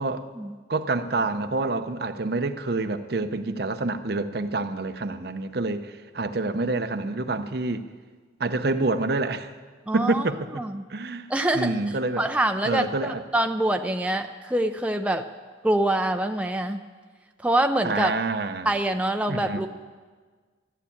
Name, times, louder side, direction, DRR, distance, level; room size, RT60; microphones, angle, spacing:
voice 1, 0.7-7.8 8.4-9.5 9.9-10.6 10.9-11.3 11.5-12.3 12.6-13.2 17.8-18.7 19.3-19.6, right 3 dB, 60° right, 9 dB, 0.7 m, -27 dB
voice 2, 9.9-10.2 10.5-10.8 11.3-11.7 12.2-15.2 15.6-16.8 17.4-18.1 18.6-19.7, right 1 dB, 5° right, 5 dB, 0.5 m, -25 dB
13.0 x 12.0 x 8.5 m, 1.5 s
head